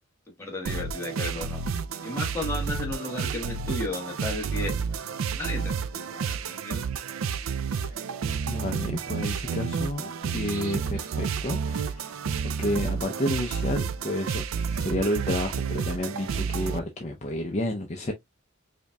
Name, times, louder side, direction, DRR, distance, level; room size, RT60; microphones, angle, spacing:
voice 1, 0.4-1.6 2.0-4.8 5.3-6.9, left 2 dB, 10° left, 1.2 m, -34 dB
sound 1, 0.6-16.8, right 6 dB, 75° right, 0.4 m, -30 dB
voice 2, 8.5-12.2 12.4-14.4 14.7-18.1, left 1 dB, 35° left, 0.5 m, -30 dB
5.0 x 2.7 x 2.2 m
head